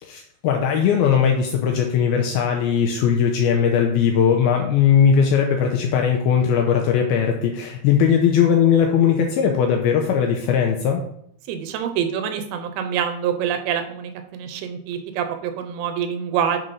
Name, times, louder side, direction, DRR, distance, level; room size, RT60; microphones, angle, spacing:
voice 1, 0.0-11.0, left 7 dB, 85° left, 3 dB, 2.2 m, -19 dB
voice 2, 11.5-16.6, right 8 dB, 90° right, 8 dB, 3.1 m, -26 dB
7.6 x 4.0 x 5.2 m, 0.72 s
omnidirectional pair, 5.0 m